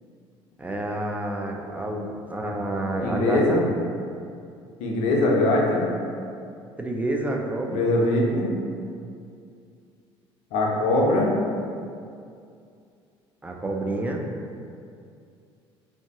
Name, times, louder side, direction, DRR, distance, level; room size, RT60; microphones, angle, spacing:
voice 1, 0.6-3.6 6.8-7.8 13.4-14.2, right 1 dB, 10° right, 1 dB, 0.4 m, -28 dB
voice 2, 3.0-3.6 4.8-5.9 7.7-8.5 10.5-11.3, left 1 dB, 60° left, -2 dB, 0.6 m, -21 dB
2.6 x 2.2 x 3.5 m, 2.4 s
figure-of-eight pair, 55°, 14 cm